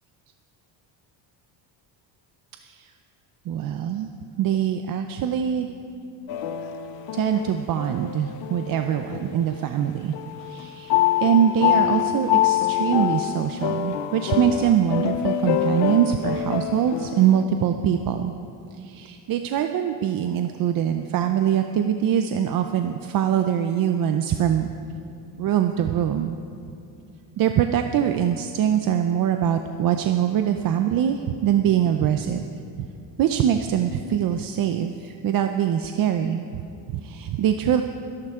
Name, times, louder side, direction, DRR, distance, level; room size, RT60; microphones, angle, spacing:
voice 1, 2.6-2.9 3.5-4.1 4.4-5.7 7.1-10.1 10.4-18.3 18.7-24.7 25.4-26.4 27.4-32.4 32.8-32.9 33.2-36.6 36.9-37.8, right 9 dB, 45° right, 6 dB, 0.5 m, -23 dB
sound 1, 6.3-9.8 10.1-17.4, left 11 dB, 65° left, 0.7 m, -25 dB
25.5 x 11.5 x 3.6 m, 2.7 s
cardioid pair, 170°, 48 cm